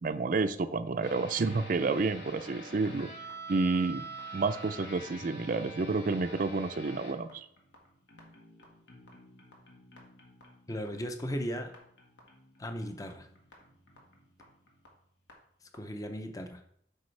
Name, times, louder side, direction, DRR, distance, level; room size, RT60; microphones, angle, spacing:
voice 1, 0.0-3.1 3.5-4.0 4.3-7.5, right 3 dB, 50° right, 11 dB, 0.4 m, -30 dB
sound 1, 1.0-15.3 15.7-15.8, right 2 dB, 85° left, 1.7 m, -48 dB
voice 2, 10.7-11.7 12.6-13.3 15.7-16.6, equal, 20° left, 6 dB, 0.6 m, -36 dB
8.1 x 5.4 x 3.3 m, 0.67 s
head